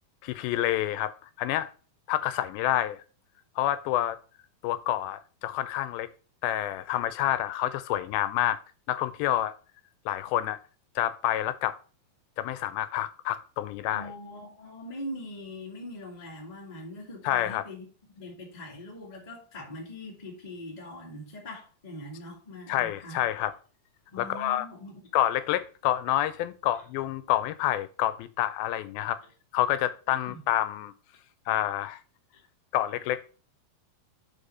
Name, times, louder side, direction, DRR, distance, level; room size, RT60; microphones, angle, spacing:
voice 1, 0.2-1.7 2.1-3.0 3.6-4.2 4.6-6.1 6.4-8.6 8.9-9.6 10.1-10.6 11.0-11.8 12.4-14.1 17.2-17.6 22.7-23.5 24.2-24.7 25.1-29.2 29.5-30.9 31.5-32.0 32.7-33.4, left 13 dB, 85° left, 2.3 m, -28 dB
voice 2, 13.9-17.9 18.1-23.2 24.1-25.1 30.2-30.4 32.3-32.4, left 1 dB, 20° left, 1.1 m, -42 dB
5.1 x 4.8 x 5.3 m
omnidirectional pair, 4.2 m